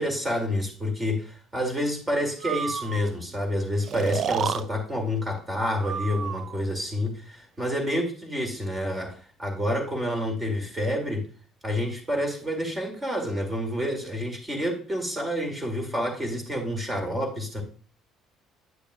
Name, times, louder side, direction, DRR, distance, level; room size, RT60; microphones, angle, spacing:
voice 1, 0.0-11.3 11.6-17.6, equal, 15° right, 2 dB, 2.3 m, -28 dB
Breathing, 2.4-3.1 3.9-4.6 5.8-6.6, right 7 dB, 50° right, 0.3 m, -30 dB
9.7 x 6.9 x 2.3 m, 0.39 s
cardioid pair, 110°, 0 cm